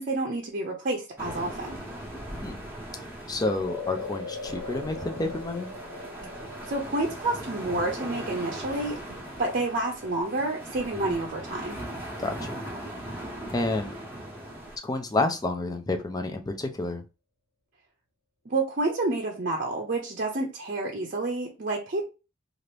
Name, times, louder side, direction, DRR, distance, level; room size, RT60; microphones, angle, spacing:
voice 1, 0.0-1.8 6.7-11.8 18.5-22.0, right 2 dB, 45° right, 0 dB, 0.6 m, -29 dB
sound 1, 1.2-14.8, right 1 dB, 10° right, 0.9 m, -39 dB
voice 2, 3.3-5.7 12.2-12.5 13.5-13.9 14.8-17.0, left 2 dB, 20° left, 6 dB, 0.5 m, -29 dB
sound 2, 3.6-12.1, left 3 dB, 70° left, 1.0 m, -42 dB
2.8 x 2.5 x 3.3 m, 0.30 s
head